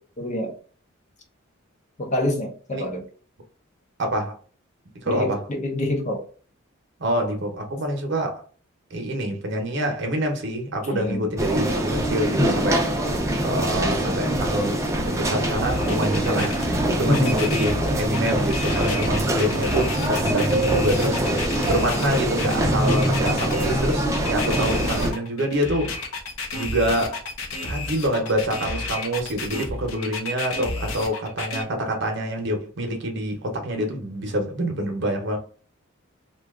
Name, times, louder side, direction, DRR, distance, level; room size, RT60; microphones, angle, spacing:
voice 1, 0.2-0.5 2.0-3.1 5.1-6.2 10.9-11.2 17.1-17.3, left 1 dB, 35° left, 0.7 m, -25 dB
voice 2, 4.0-4.3 5.0-5.4 7.0-8.4 8.9-13.0 13.4-26.0 26.5-27.2 27.6-35.4, right 1 dB, 55° right, 0.8 m, -26 dB
sound 1, 11.4-25.1, right 1 dB, 15° right, 0.5 m, -24 dB
sound 2, 15.6-31.6, left 3 dB, 80° left, 0.7 m, -31 dB
2.8 x 2.3 x 3.6 m
head